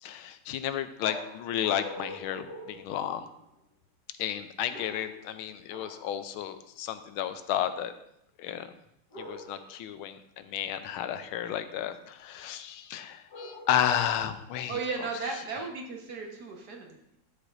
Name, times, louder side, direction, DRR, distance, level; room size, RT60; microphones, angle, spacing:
voice 1, 0.0-3.3 4.2-7.9 8.4-8.7 9.2-14.8, left 10 dB, 90° left, 11 dB, 1.5 m, -32 dB
sound 1, 1.0-3.5 4.7-5.3 5.7-6.2 9.1-9.8 13.3-14.0, left 2 dB, 55° left, 2.3 m, -43 dB
voice 2, 14.7-17.2, right 4 dB, 55° right, 1 dB, 1.6 m, -35 dB
12.5 x 7.5 x 2.6 m, 0.77 s
omnidirectional pair, 2.3 m